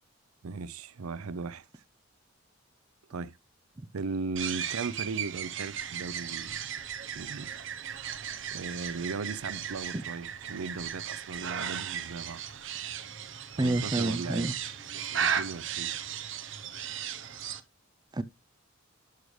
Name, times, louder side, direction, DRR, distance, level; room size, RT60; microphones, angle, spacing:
voice 1, 0.4-1.8 3.1-3.4 3.9-6.7 7.1-7.6 8.5-12.4 13.6-14.6 14.9-15.9, right 4 dB, 90° right, 0.6 m, -37 dB
sound 1, 4.4-17.6, right 8 dB, 60° right, 0.9 m, -36 dB
voice 2, 13.6-14.5 18.1-18.2, right 2 dB, 20° right, 0.4 m, -29 dB
11.5 x 6.4 x 3.2 m
head